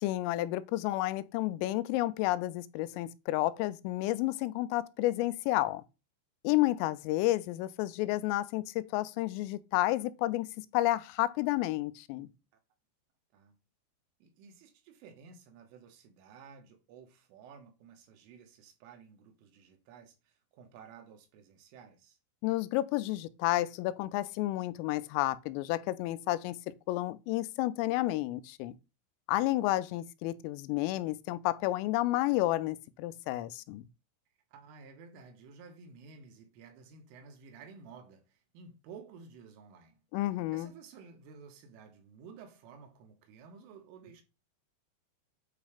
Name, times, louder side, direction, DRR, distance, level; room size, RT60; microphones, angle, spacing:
voice 1, 0.0-5.8 6.4-10.5 10.7-12.3 22.4-28.7 29.3-33.8 40.1-40.7, left 17 dB, 90° left, 3.2 m, -31 dB
voice 2, 14.2-22.2 34.5-40.0 40.5-44.2, right 5 dB, 80° right, 3.8 m, -53 dB
9.0 x 3.2 x 5.0 m
omnidirectional pair, 5.8 m